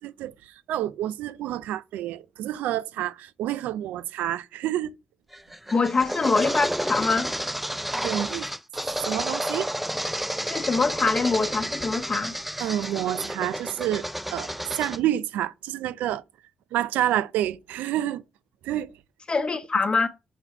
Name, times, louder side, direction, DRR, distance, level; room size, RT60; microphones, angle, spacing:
voice 1, 0.0-5.0 8.0-8.5 9.0-9.7 12.6-16.2 16.7-18.2 18.6-18.9, right 12 dB, 85° right, 0.4 m, -28 dB
sound 1, 5.3-15.0, right 1 dB, 5° right, 0.4 m, -31 dB
voice 2, 5.7-7.3 10.4-12.3 19.3-20.1, left 4 dB, 35° left, 1.1 m, -24 dB
6.0 x 4.0 x 5.6 m
supercardioid pair, 60°, 3 cm